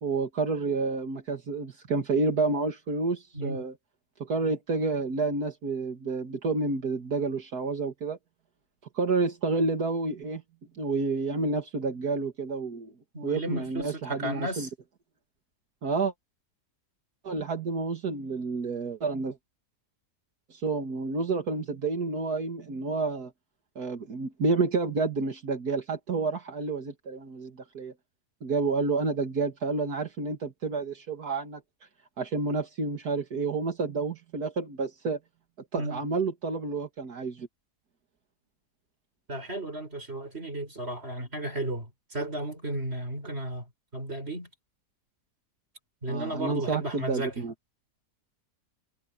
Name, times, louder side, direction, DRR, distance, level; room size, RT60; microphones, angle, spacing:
voice 1, 0.0-3.7 4.2-8.2 8.9-10.4 10.8-12.9 13.2-14.7 15.8-16.1 17.2-19.4 20.5-23.3 23.8-27.9 28.4-31.6 32.2-35.2 35.7-37.5 46.1-47.5, right 3 dB, 75° right, 2.4 m, -29 dB
voice 2, 13.1-14.7 35.8-36.1 39.3-43.6 43.9-44.5 46.0-47.3, right 1 dB, 40° right, 6.2 m, -34 dB
omnidirectional pair, 1.6 m